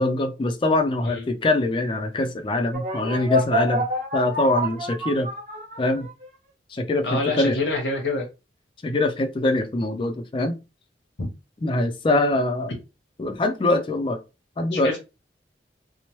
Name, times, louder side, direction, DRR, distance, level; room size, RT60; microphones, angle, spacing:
voice 1, 0.0-3.9 4.1-5.3 5.8-6.1 6.7-7.6 8.8-10.6 11.6-12.7 13.2-14.2 14.6-14.9, left 2 dB, 30° left, 0.3 m, -23 dB
sound 1, 2.7-6.2, equal, 40° right, 1.1 m, -27 dB
voice 2, 7.0-8.2 11.2-11.3 14.7-15.0, left 3 dB, 80° left, 0.8 m, -26 dB
2.9 x 2.0 x 3.0 m
head